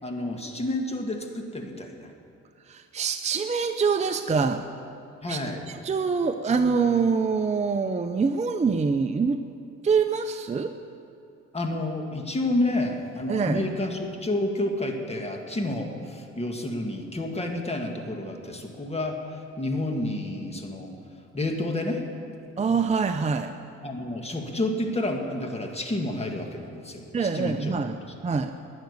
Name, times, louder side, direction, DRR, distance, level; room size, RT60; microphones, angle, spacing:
voice 1, 0.0-2.1 5.2-5.7 11.5-20.9 21.3-22.0 23.8-28.1, left 1 dB, 20° left, 3 dB, 1.9 m, -30 dB
voice 2, 2.7-4.6 5.3-5.4 5.7-9.4 9.8-10.7 13.3-13.6 22.6-23.5 27.1-28.0 28.2-28.5, right 5 dB, 25° right, 6 dB, 0.6 m, -25 dB
12.0 x 9.2 x 9.6 m, 2.7 s
cardioid pair, 90°, 30 cm